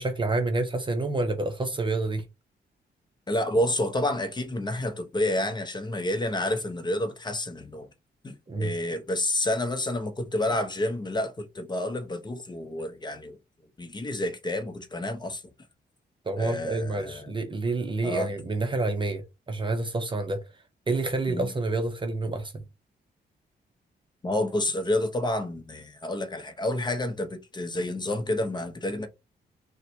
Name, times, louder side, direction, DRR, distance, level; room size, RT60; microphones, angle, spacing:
voice 1, 0.0-2.2 8.5-8.7 16.3-20.4 20.9-22.6, right 2 dB, 25° right, 0.7 m, -28 dB
voice 2, 3.3-7.9 8.2-13.4 13.8-15.4 16.4-17.3 18.0-18.3 21.3-21.5 24.2-29.1, left 1 dB, 25° left, 0.8 m, -29 dB
3.9 x 2.2 x 4.5 m
cardioid pair, 95°, 18 cm